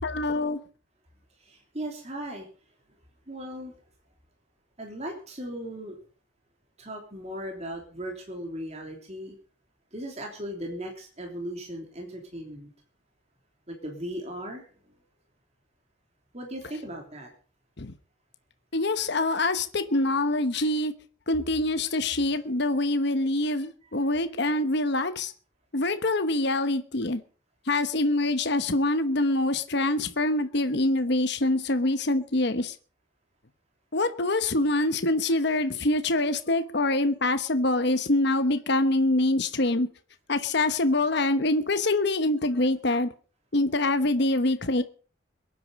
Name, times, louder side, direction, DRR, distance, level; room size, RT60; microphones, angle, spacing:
voice 1, 0.0-0.6 17.8-17.9 18.7-20.9 21.3-25.3 25.7-27.2 27.7-32.7 33.9-39.9 40.3-43.1 43.5-44.8, left 2 dB, 55° left, 1.1 m, -25 dB
voice 2, 1.4-2.5 3.3-3.7 4.8-6.0 6.8-9.3 9.9-12.7 13.7-14.6 16.3-17.3, right 1 dB, 35° right, 3.2 m, -37 dB
22.0 x 9.4 x 5.3 m
head